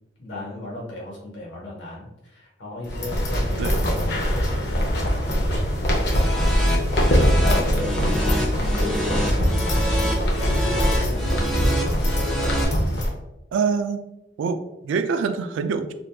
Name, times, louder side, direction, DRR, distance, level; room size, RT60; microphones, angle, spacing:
voice 1, 0.2-5.6 6.2-6.8 7.1-12.1, left 1 dB, 80° left, -3 dB, 1.1 m, -35 dB
sound 1, 2.8-13.1, equal, 60° left, 0.7 m, -23 dB
sound 2, 6.0-12.6, equal, 5° left, 0.3 m, -25 dB
voice 2, 7.7-8.2 13.5-14.0 14.4-15.9, right 5 dB, 90° right, 9 dB, 0.3 m, -25 dB
2.6 x 2.3 x 3.3 m, 0.92 s
head